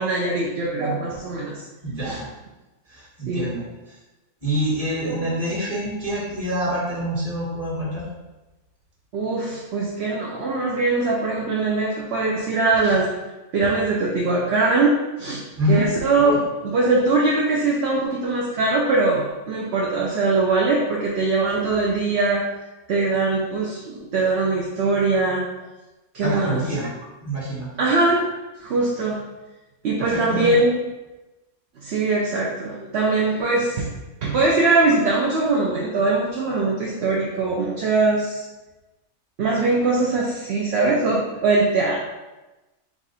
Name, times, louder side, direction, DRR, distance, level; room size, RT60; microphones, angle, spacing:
voice 1, 0.0-1.6 2.1-2.2 3.3-3.5 5.0-5.4 9.1-13.1 13.5-15.4 15.7-16.3 16.7-22.4 22.9-25.4 26.1-26.6 27.8-28.3 28.6-29.2 29.8-30.8 31.8-33.9 34.2-38.4 39.4-42.0, right 3 dB, 60° right, -3 dB, 0.8 m, -21 dB
voice 2, 1.8-2.3 2.9-3.6 3.9-4.0 4.4-8.0 15.6-15.9 16.2-16.4 26.2-26.9 27.2-27.7 30.0-30.6, equal, 25° right, -6 dB, 1.6 m, -26 dB
4.6 x 2.5 x 4.1 m, 1.1 s
omnidirectional pair, 1.5 m